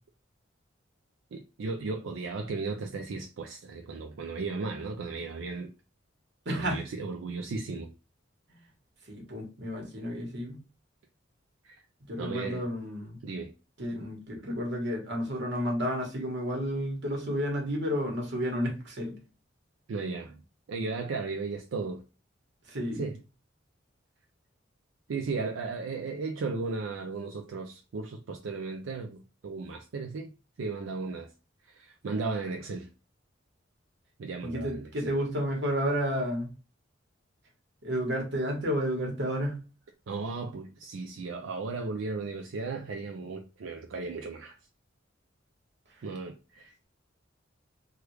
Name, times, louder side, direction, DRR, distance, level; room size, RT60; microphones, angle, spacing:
voice 1, 1.3-5.7 6.5-7.9 11.6-11.8 12.2-12.7 13.2-13.5 19.9-20.4 20.7-22.0 23.0-23.2 25.1-30.3 30.6-31.3 31.6-32.9 34.2-34.9 40.1-44.6 46.0-46.9, right 4 dB, 85° right, 0.4 m, -35 dB
voice 2, 6.4-6.8 9.1-10.6 12.1-13.2 13.8-19.1 22.7-23.0 34.4-36.5 37.8-39.6, equal, 65° right, 1.2 m, -31 dB
3.3 x 2.4 x 3.0 m
head